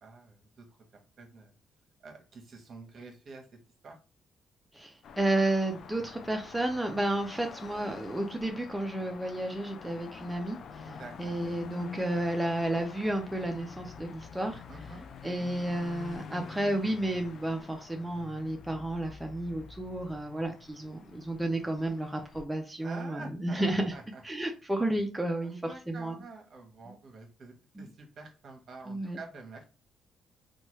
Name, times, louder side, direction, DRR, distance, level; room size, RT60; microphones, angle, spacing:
voice 1, 0.0-0.6 1.2-1.5 2.0-3.5 3.8-4.0 10.8-11.3 14.7-15.1 22.8-24.2 25.4-29.6, right 3 dB, 55° right, 0.9 m, -47 dB
voice 2, 4.7-14.6 15.2-23.9 24.2-26.1 26.9-27.0 27.8-27.9 28.9-29.2, right 1 dB, 10° right, 0.4 m, -32 dB
sound 1, 5.0-22.5, left 6 dB, 65° left, 0.3 m, -47 dB
2.9 x 2.2 x 3.0 m
cardioid pair, 90°, 0 cm